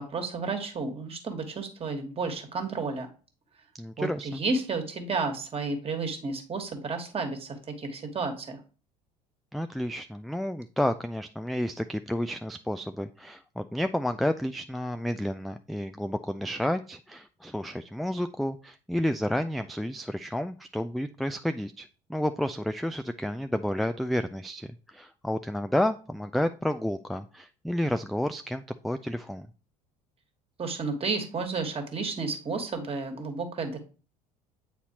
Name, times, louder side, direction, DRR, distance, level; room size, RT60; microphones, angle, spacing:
voice 1, 0.0-3.1 4.0-8.6 30.6-33.8, right 4 dB, 30° right, 5 dB, 1.6 m, -32 dB
voice 2, 3.8-4.4 9.5-29.5, left 1 dB, ahead, 9 dB, 0.3 m, -31 dB
8.2 x 4.2 x 2.9 m, 0.37 s
figure-of-eight pair, 60°, 20 cm